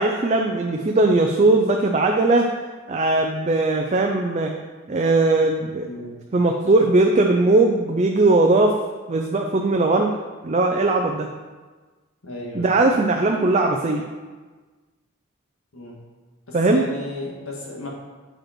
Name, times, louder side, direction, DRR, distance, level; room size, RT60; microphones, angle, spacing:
voice 1, 0.0-2.5 2.9-4.5 4.9-5.9 6.3-8.8 9.1-10.1 10.4-11.3 12.5-14.0 16.5-16.8, right 2 dB, 35° right, 2 dB, 0.4 m, -19 dB
voice 2, 5.8-6.2 12.2-12.8 15.7-16.0 16.5-17.9, left 2 dB, 85° left, -2 dB, 1.8 m, -34 dB
7.5 x 5.3 x 4.3 m, 1.3 s
head